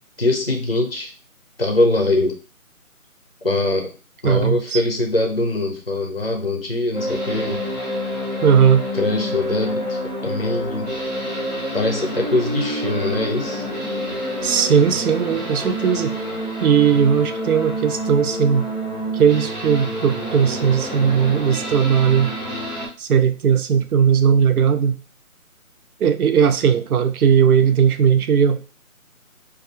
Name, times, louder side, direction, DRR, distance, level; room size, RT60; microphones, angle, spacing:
voice 1, 0.2-1.1 1.6-2.4 3.4-3.9 4.2-7.7 8.9-10.9 11.7-13.6, left 2 dB, 45° left, 3 dB, 0.4 m, -22 dB
voice 2, 4.2-4.8 8.4-8.9 14.4-16.2 16.6-18.7 19.1-22.3 23.0-25.0 26.0-28.6, right 7 dB, 85° right, 10 dB, 0.5 m, -17 dB
sound 1, 6.9-22.9, equal, 30° right, 0.8 m, -28 dB
2.7 x 2.3 x 3.1 m, 0.34 s
figure-of-eight pair, 180°, 43 cm